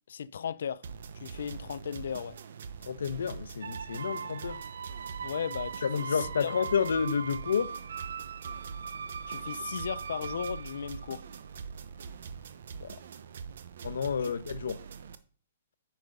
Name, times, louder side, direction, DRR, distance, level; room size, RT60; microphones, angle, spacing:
voice 1, 0.1-0.8 1.2-2.4 5.2-6.1 6.4-6.5 9.3-11.2 14.2-14.3, left 7 dB, 60° left, 0.5 m, -36 dB
sound 1, 0.8-15.2, right 6 dB, 55° right, 0.9 m, -44 dB
voice 2, 2.8-4.6 5.8-7.7 12.8-12.9 13.8-14.8, left 6 dB, 80° left, 1.1 m, -30 dB
sound 2, 3.6-11.6, right 6 dB, 80° right, 0.6 m, -40 dB
9.2 x 6.2 x 5.3 m
hypercardioid pair, 175°, 0 cm